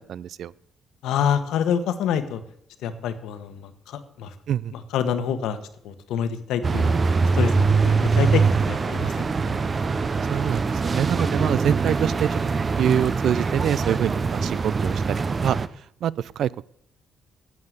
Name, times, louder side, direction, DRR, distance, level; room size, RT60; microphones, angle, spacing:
voice 1, 0.1-0.5 4.5-4.7 10.3-12.3 12.8-15.6 16.0-16.6, right 10 dB, 70° right, 22 dB, 0.4 m, -25 dB
voice 2, 1.0-2.4 2.8-4.3 4.9-5.6 5.8-7.0 7.4-9.6, left 8 dB, 85° left, 11 dB, 1.2 m, -27 dB
sound 1, 6.6-15.7, right 4 dB, 35° right, 0.7 m, -23 dB
9.5 x 8.7 x 7.9 m, 0.69 s
cardioid pair, 90°, 0 cm